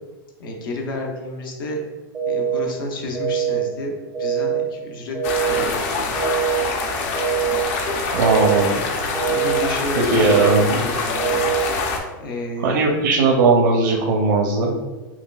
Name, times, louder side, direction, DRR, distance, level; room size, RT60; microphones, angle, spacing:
voice 1, 0.4-1.8 2.3-5.2 5.4-6.1 9.2-11.4 12.2-12.9, left 1 dB, 75° left, 1 dB, 0.8 m, -30 dB
sound 1, 2.1-2.6 3.1-3.6 4.1-4.6 5.1-5.6 6.1-6.6 7.1-7.6 8.1-8.6 9.1-9.6 10.1-10.6 11.1-11.6, right 8 dB, 10° right, 0.4 m, -23 dB
sound 2, 5.2-12.0, left 4 dB, 45° left, 0.5 m, -25 dB
voice 2, 8.1-8.8 10.1-10.8 12.6-14.7, right 3 dB, 80° right, 1 dB, 0.6 m, -18 dB
5.6 x 2.4 x 2.3 m, 1.2 s
supercardioid pair, 165°, 11 cm